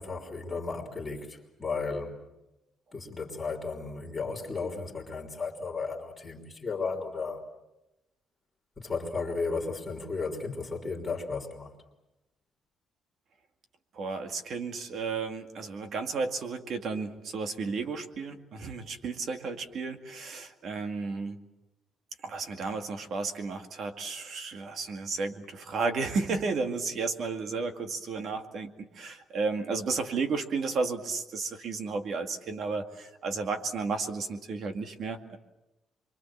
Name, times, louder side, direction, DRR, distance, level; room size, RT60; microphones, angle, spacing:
voice 1, 0.0-2.2 2.9-7.4 8.8-11.7, left 4 dB, 15° left, -2 dB, 3.4 m, -34 dB
voice 2, 13.9-21.4 22.2-35.4, right 4 dB, 50° right, 6 dB, 2.2 m, -33 dB
28.0 x 23.5 x 7.4 m, 0.99 s
cardioid pair, 160°, 0 cm